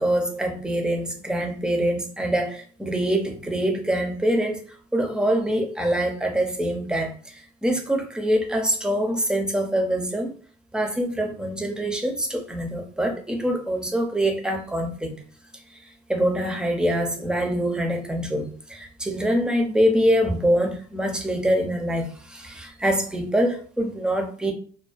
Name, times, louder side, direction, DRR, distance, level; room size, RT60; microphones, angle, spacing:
voice 1, 0.0-10.3 10.7-15.2 15.8-24.5, equal, 5° right, 0.5 m, -24 dB
2.5 x 2.3 x 2.3 m
cardioid pair, 110°, 17 cm